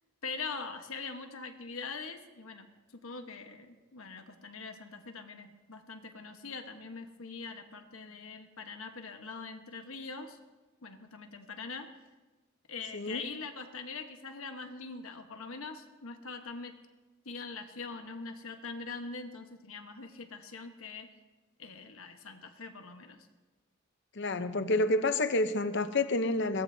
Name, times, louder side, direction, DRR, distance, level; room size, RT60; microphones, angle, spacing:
voice 1, 0.2-2.7 3.0-10.4 10.8-11.9 12.7-16.8 17.2-21.1 21.6-23.3, left 4 dB, 75° left, 5 dB, 1.2 m, -43 dB
voice 2, 24.1-26.6, left 2 dB, 55° left, 10 dB, 0.8 m, -29 dB
22.0 x 17.0 x 2.8 m, 1.2 s
head